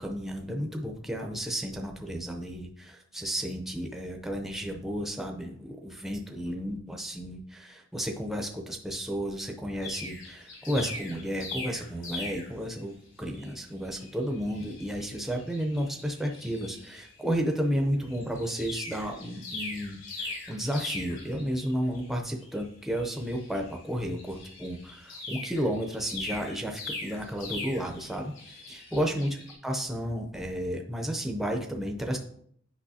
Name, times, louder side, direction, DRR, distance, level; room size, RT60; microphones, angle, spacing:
voice 1, 0.0-29.4 29.6-32.2, equal, ahead, 2 dB, 0.6 m, -32 dB
sound 1, 9.8-12.8 13.3-13.5 13.8-17.2 17.5-17.7 18.0-29.5, left 3 dB, 65° left, 3.1 m, -41 dB
8.6 x 5.4 x 2.7 m, 0.65 s
head